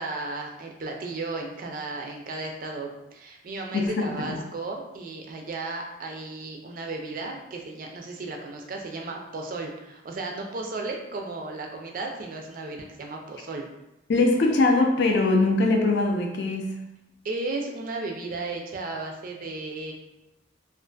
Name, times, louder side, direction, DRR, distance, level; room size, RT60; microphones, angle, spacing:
voice 1, 0.0-13.6 17.2-19.9, right 3 dB, 45° right, 2 dB, 0.3 m, -34 dB
voice 2, 3.7-4.4 14.1-16.8, left 2 dB, 55° left, 2 dB, 0.4 m, -22 dB
2.5 x 2.4 x 2.2 m, 0.92 s
head